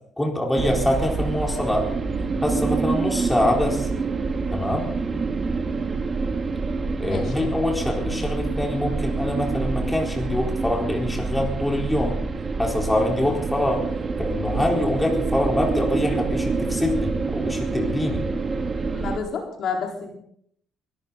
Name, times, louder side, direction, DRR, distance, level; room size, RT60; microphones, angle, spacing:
voice 1, 0.2-1.9 2.4-3.9 4.5-4.9 7.0-12.2 12.6-13.8 14.2-18.2, left 1 dB, 10° left, 0 dB, 4.2 m, -24 dB
sound 1, 0.6-19.2, right 4 dB, 35° right, 1.8 m, -26 dB
voice 2, 7.0-7.5 18.9-20.1, left 5 dB, 60° left, 1 dB, 4.1 m, -30 dB
23.5 x 13.5 x 4.0 m, 0.69 s
cardioid pair, 115°, 0 cm